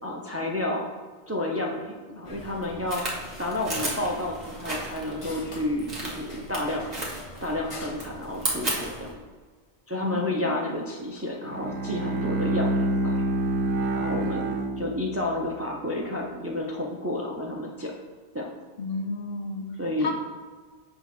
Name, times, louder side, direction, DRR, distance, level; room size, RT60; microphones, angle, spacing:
voice 1, 0.0-0.9 1.3-3.0 3.4-6.9 7.4-9.1 9.9-13.3 13.9-17.9 18.3-18.5 19.8-20.1, left 1 dB, 20° right, -1 dB, 0.5 m, -30 dB
sound 1, 2.2-9.1, left 1 dB, 35° left, 0.7 m, -43 dB
sound 2, 2.9-5.2 5.8-6.6 6.9-7.6 7.9-9.1, right 1 dB, 35° right, 1.7 m, -33 dB
voice 2, 10.0-10.6 18.8-19.7 20.0-20.2, left 3 dB, 60° left, 4 dB, 0.9 m, -32 dB
Bowed string instrument, 11.4-15.5, right 2 dB, 75° right, 0.9 m, -27 dB
8.1 x 2.9 x 5.9 m, 1.4 s
omnidirectional pair, 1.1 m